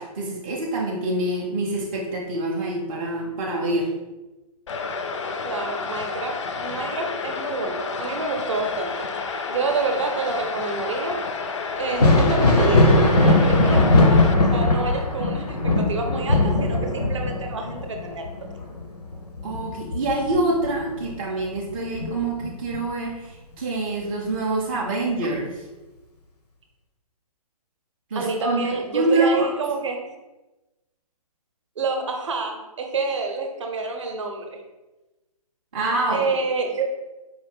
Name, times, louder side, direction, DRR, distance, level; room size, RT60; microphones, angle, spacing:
voice 1, 0.0-3.9 19.4-25.6 28.1-28.6 28.9-29.5 35.7-36.4, right 2 dB, 20° right, -4 dB, 0.4 m, -26 dB
sound 1, 4.7-14.3, left 4 dB, 50° left, 0.4 m, -30 dB
voice 2, 5.4-8.9 9.5-11.2 11.8-18.3 28.1-30.0 31.8-34.6 36.1-36.8, right 3 dB, 50° right, 3 dB, 0.7 m, -28 dB
Thunder, 11.8-21.2 21.5-22.8 24.3-24.4 25.2-25.4, left 2 dB, 85° left, 0.7 m, -20 dB
4.5 x 2.5 x 3.3 m, 1.1 s
figure-of-eight pair, 135°, 20 cm